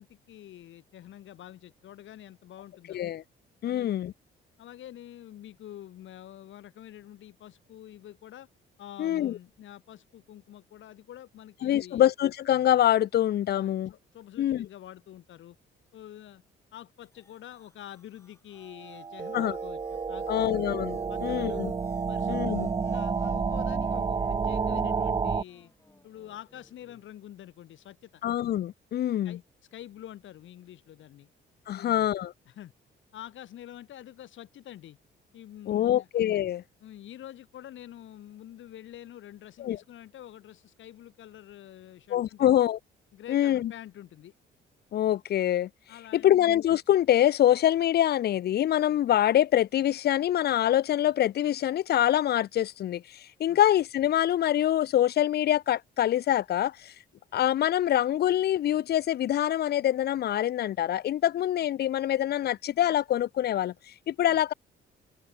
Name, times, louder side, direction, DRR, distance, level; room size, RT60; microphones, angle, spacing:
voice 1, 0.0-3.0 3.6-4.1 4.6-8.5 8.8-12.0 13.5-15.6 15.9-16.4 16.7-20.4 21.1-21.6 22.1-25.7 26.0-28.2 29.2-29.4 29.7-31.3 31.7-32.1 32.5-32.7 33.1-35.0 35.3-36.1 36.8-42.6 43.1-44.3 45.9-46.4 53.5-53.6, left 12 dB, 75° left, 5.0 m, -47 dB
voice 2, 2.9-3.2 3.6-4.1 9.0-9.4 11.6-13.9 14.4-14.7 19.3-19.6 20.3-21.7 22.3-22.7 28.2-29.4 31.7-32.3 35.7-36.6 39.6-39.8 42.1-42.8 43.3-43.7 44.9-45.7 46.1-56.9 57.3-64.5, left 12 dB, 55° left, 0.5 m, -25 dB
sound 1, 17.0-27.0, left 2 dB, 15° left, 4.9 m, -64 dB
sound 2, 18.8-25.4, right 5 dB, 25° right, 0.5 m, -30 dB
cardioid pair, 90°, 20 cm